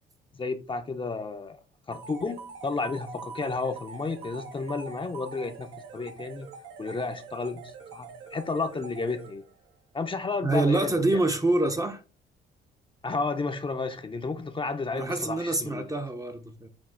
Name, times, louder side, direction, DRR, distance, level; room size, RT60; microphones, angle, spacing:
voice 1, 0.4-1.6 1.9-6.5 6.8-9.4 9.9-11.2 13.0-15.9, left 3 dB, 25° left, 0.6 m, -32 dB
sound 1, 1.9-9.7, right 5 dB, 85° right, 1.0 m, -44 dB
voice 2, 10.4-12.0 14.9-16.7, right 2 dB, 15° right, 0.6 m, -26 dB
6.1 x 2.4 x 3.7 m
cardioid pair, 90°, 20 cm